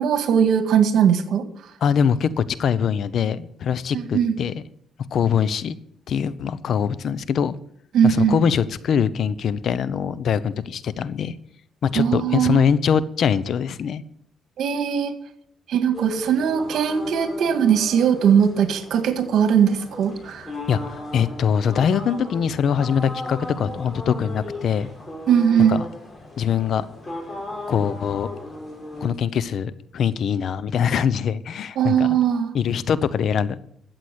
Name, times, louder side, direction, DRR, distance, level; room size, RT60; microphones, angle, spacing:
voice 1, 0.0-1.5 3.9-4.3 7.9-8.4 12.0-12.7 14.6-15.2 15.7-20.5 25.3-25.8 31.8-32.5, right 8 dB, 70° right, 9 dB, 1.8 m, -19 dB
voice 2, 1.8-4.6 5.1-5.8 6.1-7.6 8.0-11.3 11.8-14.0 20.7-24.9 25.7-25.9 26.4-26.8 27.7-28.3 29.0-32.1 32.5-33.6, left 7 dB, 65° left, 17 dB, 0.8 m, -23 dB
sound 1, 15.9-29.1, left 1 dB, 25° left, 5.0 m, -36 dB
13.0 x 8.1 x 8.1 m, 0.69 s
cardioid pair, 90°, 0 cm